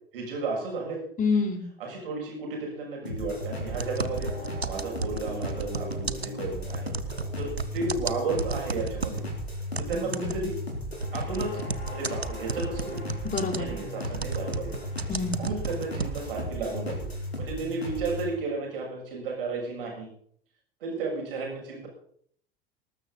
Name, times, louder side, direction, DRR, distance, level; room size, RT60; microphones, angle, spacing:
voice 1, 0.1-1.0 1.8-4.3 4.7-6.9 7.4-9.2 9.8-10.6 11.1-13.1 13.5-14.8 15.4-17.1 17.4-20.1 20.8-21.9, right 3 dB, 65° right, 0 dB, 7.0 m, -33 dB
voice 2, 1.2-1.7 9.9-10.4 13.2-13.8 15.1-15.5, left 4 dB, 25° left, 4 dB, 3.6 m, -28 dB
sound 1, 3.0-18.3, equal, 85° left, 3.6 m, -35 dB
sound 2, 3.7-9.3 9.7-16.5, right 4 dB, 90° right, 0.8 m, -34 dB
19.5 x 13.0 x 4.1 m, 0.63 s
figure-of-eight pair, 75°, 30 cm